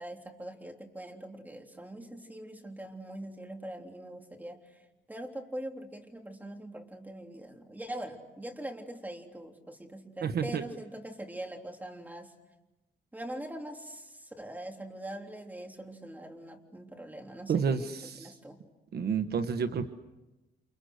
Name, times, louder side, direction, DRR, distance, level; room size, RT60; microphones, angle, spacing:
voice 1, 0.0-4.8 5.1-12.3 13.1-18.6, right 1 dB, 10° right, 2 dB, 3.5 m, -43 dB
voice 2, 10.2-10.6 17.5-18.3 18.9-19.9, right 6 dB, 60° right, 9 dB, 1.3 m, -30 dB
29.5 x 28.5 x 6.6 m, 1.0 s
cardioid pair, 135°, 18 cm